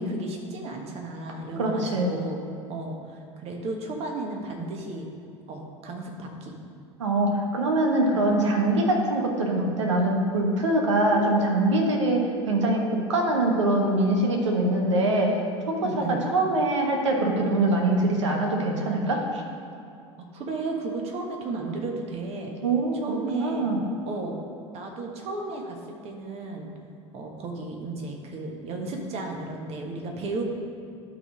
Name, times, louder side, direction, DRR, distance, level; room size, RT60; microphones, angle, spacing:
voice 1, 0.0-2.4 2.7-5.1 5.5-6.5 15.8-16.2 20.2-22.5 23.0-23.7 24.0-24.4 24.7-25.8 26.0-26.7 27.1-30.4, right 3 dB, 40° right, 1 dB, 1.5 m, -34 dB
voice 2, 1.6-2.1 7.0-15.4 15.7-15.8 16.3-19.4 22.6-23.8, right 2 dB, 75° right, 1 dB, 1.3 m, -23 dB
12.0 x 4.2 x 5.0 m, 2.5 s
figure-of-eight pair, 75°, 15 cm